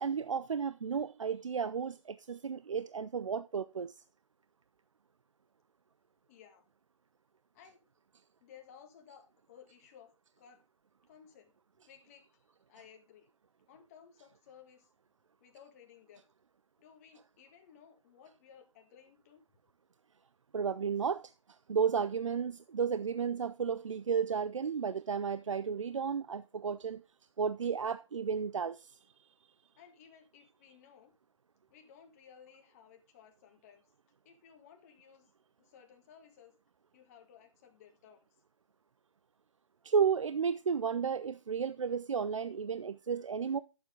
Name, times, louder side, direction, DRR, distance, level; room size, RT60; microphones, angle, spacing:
voice 1, 0.0-4.0 20.5-21.3 21.7-27.0 27.4-29.3 39.8-43.6, right 6 dB, 70° right, 0.5 m, -33 dB
voice 2, 6.3-6.7 7.5-7.8 8.4-10.1 10.4-10.6 11.1-11.5 11.9-13.3 13.7-14.9 15.4-16.2 16.8-19.4 29.8-31.1 31.7-33.9 34.3-35.3 35.6-36.5 36.9-38.4, left 8 dB, 30° left, 1.7 m, -58 dB
11.5 x 7.2 x 3.7 m
figure-of-eight pair, 145°, 17 cm